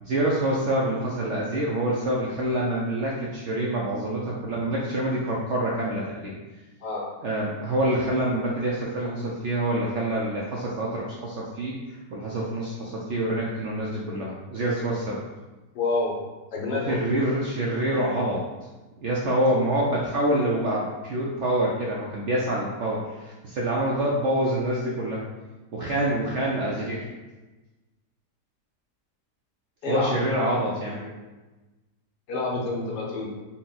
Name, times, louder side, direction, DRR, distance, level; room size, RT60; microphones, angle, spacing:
voice 1, 0.0-6.3 7.2-11.8 12.1-15.2 16.9-18.4 19.0-25.2 25.7-27.0 29.9-31.0, right 1 dB, 70° right, -4 dB, 0.7 m, -26 dB
voice 2, 15.7-16.2 16.5-17.1 29.8-30.4 31.0-31.1 32.3-33.3, left 3 dB, 80° left, -3 dB, 1.5 m, -28 dB
4.1 x 2.2 x 3.9 m, 1.1 s
omnidirectional pair, 1.7 m